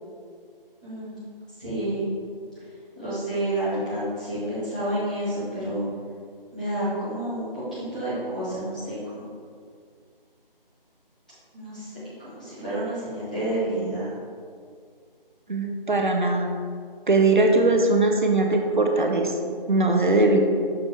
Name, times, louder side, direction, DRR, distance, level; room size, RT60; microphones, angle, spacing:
voice 1, 0.8-1.2 1.6-2.1 2.9-5.9 6.5-9.2 11.5-14.1, right 1 dB, 10° left, -15 dB, 0.8 m, -29 dB
voice 2, 15.5-16.5 17.1-19.4 19.7-20.4, right 2 dB, 55° right, 3 dB, 0.7 m, -20 dB
6.2 x 5.7 x 3.3 m, 2.1 s
figure-of-eight pair, 160°, 29 cm